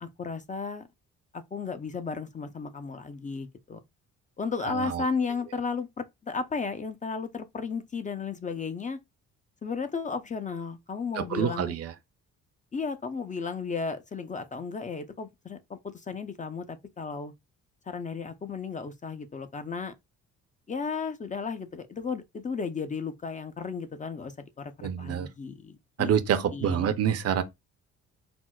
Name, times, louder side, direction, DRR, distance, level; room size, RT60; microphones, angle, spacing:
voice 1, 0.0-0.9 1.3-3.8 4.4-9.0 9.6-11.8 12.7-17.3 17.9-19.9 20.7-26.1 26.5-26.9, left 5 dB, 25° left, 0.4 m, -34 dB
voice 2, 4.6-5.0 11.2-11.9 24.8-25.3 26.0-27.4, right 9 dB, 55° right, 0.5 m, -27 dB
4.3 x 2.0 x 2.2 m
cardioid pair, 90°, 30 cm